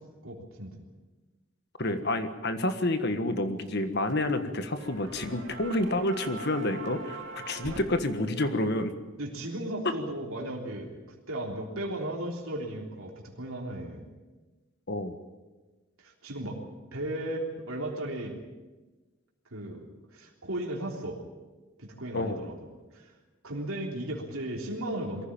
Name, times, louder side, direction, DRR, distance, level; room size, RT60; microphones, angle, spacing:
voice 1, 0.2-0.8 7.6-7.8 9.2-14.0 16.0-16.6 16.9-18.4 19.5-21.2 21.8-22.5 22.9-23.1 23.4-25.2, right 1 dB, 75° right, -1 dB, 3.4 m, -36 dB
voice 2, 1.8-8.9 14.9-15.2 22.1-22.4, left 1 dB, 50° left, 9 dB, 1.5 m, -29 dB
sound 1, 3.6-4.4 4.7-7.8, right 3 dB, 55° right, 3.0 m, -42 dB
22.5 x 15.0 x 8.9 m, 1.2 s
head